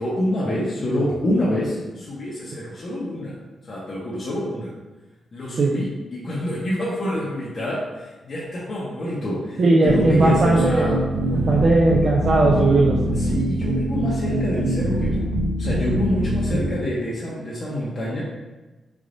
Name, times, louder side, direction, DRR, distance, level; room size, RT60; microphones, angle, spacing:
voice 1, 0.0-3.4 3.6-4.7 5.3-11.0 13.1-15.3 15.6-18.2, left 1 dB, 45° left, -6 dB, 0.7 m, -27 dB
voice 2, 9.6-10.9 11.3-13.2, right 2 dB, 50° right, -3 dB, 0.4 m, -18 dB
sound 1, 9.9-16.7, right 1 dB, 85° right, 0.8 m, -23 dB
3.6 x 3.4 x 2.5 m, 1.2 s
cardioid pair, 100°, 0 cm